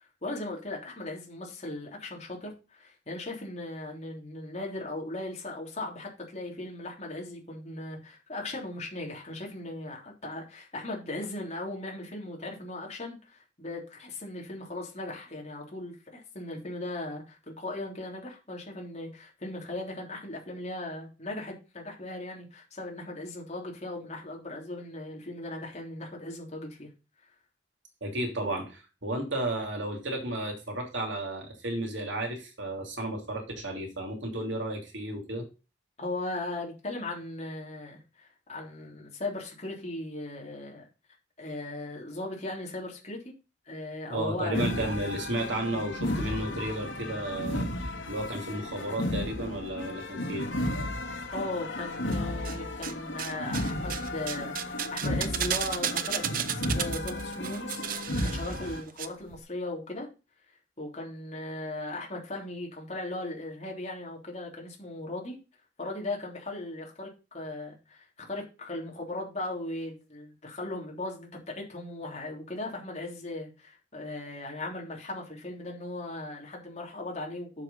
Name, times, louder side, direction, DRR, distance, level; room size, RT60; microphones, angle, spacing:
voice 1, 0.2-26.9 36.0-40.8 41.4-43.3 43.6-44.6 51.3-54.5 54.9-57.8 58.2-60.1 60.8-65.4 65.8-77.6, left 2 dB, 35° left, -1 dB, 3.3 m, -38 dB
voice 2, 28.0-35.5 44.1-47.7 48.1-50.5 58.5-58.6, right 1 dB, 75° right, 2 dB, 3.1 m, -33 dB
sound 1, 44.5-58.8, left 1 dB, 80° left, 1.9 m, -34 dB
sound 2, 52.1-52.9 53.2-59.1 59.3-59.4, right 9 dB, 45° right, 0.7 m, -34 dB
7.4 x 6.4 x 5.5 m, 0.31 s
head